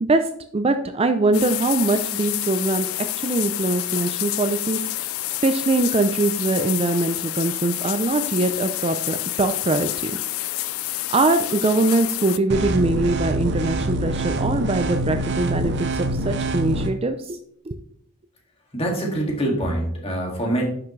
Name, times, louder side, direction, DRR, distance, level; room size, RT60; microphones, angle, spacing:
voice 1, 0.0-4.8 5.4-10.1 11.1-17.4 17.7-17.8, right 2 dB, 30° right, 8 dB, 0.5 m, -22 dB
sound 1, 1.3-12.4, left 15 dB, 80° left, 0.4 m, -28 dB
sound 2, 12.5-16.9, right 1 dB, 55° right, 0.7 m, -25 dB
voice 2, 18.7-20.6, right 1 dB, 30° left, 0 dB, 2.1 m, -24 dB
9.8 x 6.0 x 3.2 m, 0.64 s
head